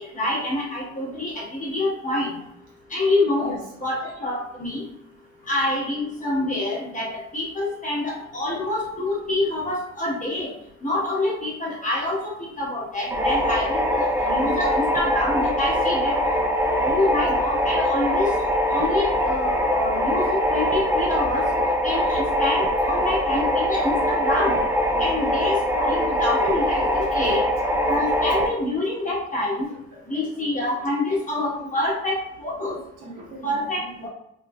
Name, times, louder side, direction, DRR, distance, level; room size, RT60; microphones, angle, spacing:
voice 1, 0.0-2.3 2.9-3.5 3.8-4.8 5.5-10.5 10.8-16.2 16.8-18.3 18.7-21.5 21.8-24.6 25.0-27.4 27.9-29.7 30.1-32.8 33.4-34.1, left 2 dB, 25° left, -5 dB, 1.2 m, -26 dB
sound 1, 13.1-28.5, equal, 10° right, 0.4 m, -23 dB
voice 2, 24.9-25.3 26.0-26.1 26.5-26.9 27.1-27.4 29.7-30.2 31.5-31.8 32.7-34.1, right 1 dB, 85° right, -4 dB, 1.2 m, -41 dB
3.0 x 2.4 x 2.3 m, 0.78 s
cardioid pair, 90°, 30 cm